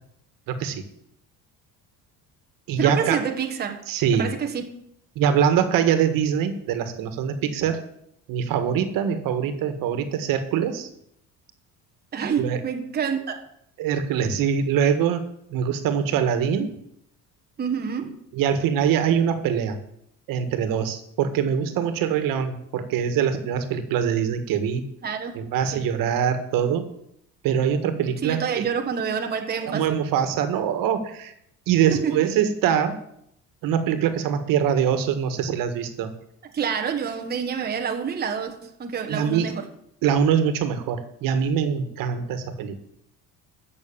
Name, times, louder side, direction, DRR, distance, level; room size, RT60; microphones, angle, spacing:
voice 1, 0.5-0.8 2.7-3.2 3.9-4.3 5.2-7.8 8.3-10.9 12.4-12.6 13.8-15.2 15.5-16.7 18.3-19.8 20.3-24.9 25.3-26.9 27.4-28.7 29.7-31.3 31.7-33.0 33.6-36.1 39.1-39.5 40.0-42.8, right 8 dB, 75° right, 9 dB, 1.8 m, -23 dB
voice 2, 2.8-3.8 4.1-4.7 12.1-13.4 17.6-18.2 25.0-25.4 25.7-25.8 28.2-29.9 31.9-32.2 36.5-39.7, right 7 dB, 30° right, 3 dB, 1.4 m, -27 dB
14.0 x 6.7 x 8.7 m, 0.74 s
cardioid pair, 160°, 34 cm